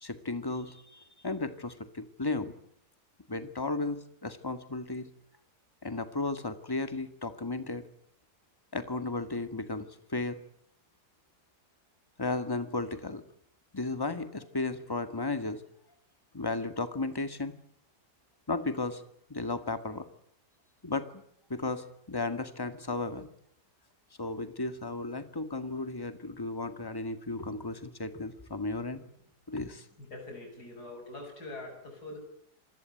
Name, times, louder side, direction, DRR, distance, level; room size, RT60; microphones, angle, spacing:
voice 1, 0.0-2.5 3.3-5.1 5.8-7.9 8.7-10.4 12.2-13.2 13.7-15.6 16.3-17.5 18.5-19.0 19.3-20.1 20.8-21.2 21.5-23.3 24.2-29.0 29.5-29.9, left 3 dB, 15° left, 10 dB, 1.8 m, -34 dB
voice 2, 30.0-32.2, left 2 dB, 70° left, 2 dB, 7.5 m, -43 dB
27.5 x 21.0 x 9.3 m, 0.68 s
omnidirectional pair, 1.8 m